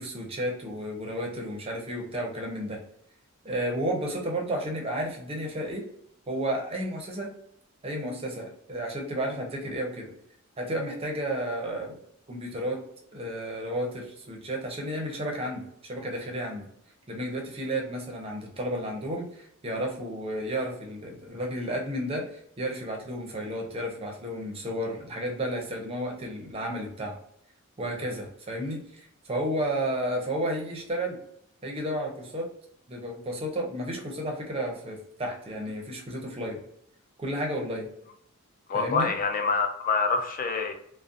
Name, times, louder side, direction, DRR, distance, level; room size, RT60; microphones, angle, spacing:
voice 1, 0.0-2.8 3.4-5.8 6.3-7.3 7.8-10.1 10.6-12.0 12.3-12.8 13.1-16.7 17.1-22.3 22.6-27.2 27.8-31.2 31.6-32.5 32.9-36.6 37.2-37.9 38.7-39.1, right 1 dB, 25° right, 0.6 m, -32 dB
voice 2, 38.7-40.7, left 4 dB, 40° left, 0.4 m, -26 dB
2.5 x 2.1 x 2.5 m
head